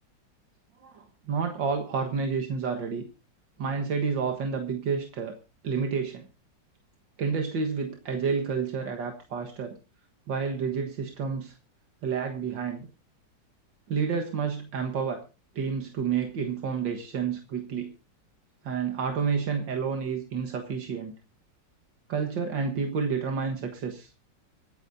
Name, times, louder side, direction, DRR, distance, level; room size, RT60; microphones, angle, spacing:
voice 1, 0.8-3.0 3.6-5.4 5.6-6.3 7.2-9.7 10.3-11.5 12.0-12.9 13.9-15.2 15.6-17.9 18.6-21.1 22.1-24.1, right 6 dB, 85° right, 4 dB, 2.2 m, -30 dB
25.5 x 9.6 x 2.7 m, 0.31 s
omnidirectional pair, 1.9 m